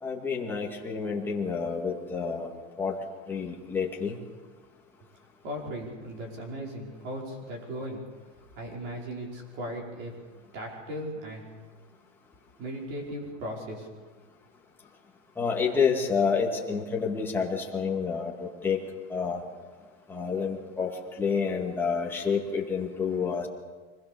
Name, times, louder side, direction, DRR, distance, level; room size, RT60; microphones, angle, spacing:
voice 1, 0.0-2.5 2.8-2.9 3.3-4.2 15.4-18.8 19.1-19.4 20.1-20.9 21.2-23.5, left 5 dB, 5° left, -3 dB, 2.3 m, -28 dB
voice 2, 5.4-8.0 8.5-10.1 10.5-11.5 12.6-13.9, equal, 30° right, -1 dB, 5.4 m, -37 dB
25.5 x 21.0 x 7.0 m, 1.4 s
supercardioid pair, 175°, 37 cm